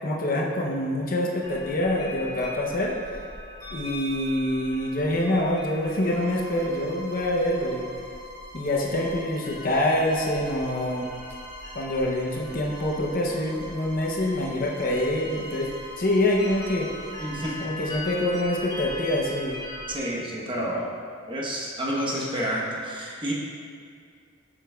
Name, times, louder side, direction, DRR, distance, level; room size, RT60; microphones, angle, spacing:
voice 1, 0.0-3.0 3.7-7.9 8.5-11.1 11.7-15.7 16.0-16.9 17.6-19.6, left 1 dB, 40° left, -2 dB, 0.6 m, -25 dB
sound 1, 1.4-19.9, left 1 dB, 15° left, 0.9 m, -41 dB
Bowed string instrument, 6.0-17.8, equal, 55° right, 1.0 m, -44 dB
voice 2, 17.2-17.6 19.9-20.9 21.3-23.3, equal, 25° right, -4 dB, 0.9 m, -29 dB
8.5 x 6.7 x 2.3 m, 2.2 s
head